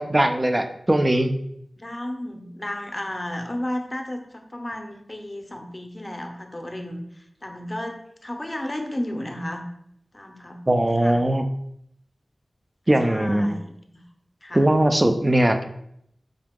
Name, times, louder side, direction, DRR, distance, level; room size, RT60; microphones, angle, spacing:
voice 1, 0.0-1.3 10.7-11.4 12.9-13.6 14.5-15.6, right 1 dB, 30° right, 6 dB, 0.5 m, -20 dB
voice 2, 1.8-9.6 10.1-10.6 11.0-11.2 13.0-13.7 14.4-14.6, left 1 dB, 25° left, 4 dB, 0.7 m, -33 dB
5.0 x 2.8 x 3.6 m, 0.72 s
wide cardioid pair, 55°, 0 cm